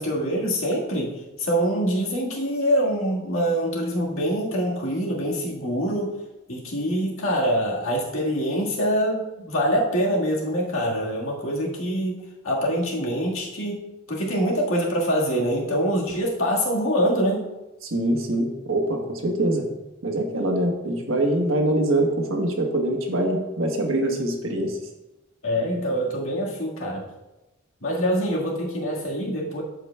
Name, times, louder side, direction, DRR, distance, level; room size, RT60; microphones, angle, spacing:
voice 1, 0.0-6.1 6.5-13.8 14.1-17.5 25.4-27.1 27.8-29.6, equal, 90° left, -3 dB, 1.7 m, -25 dB
voice 2, 17.8-19.7 20.0-24.8, right 1 dB, 75° right, 2 dB, 1.2 m, -24 dB
12.5 x 4.9 x 2.3 m, 1.0 s
head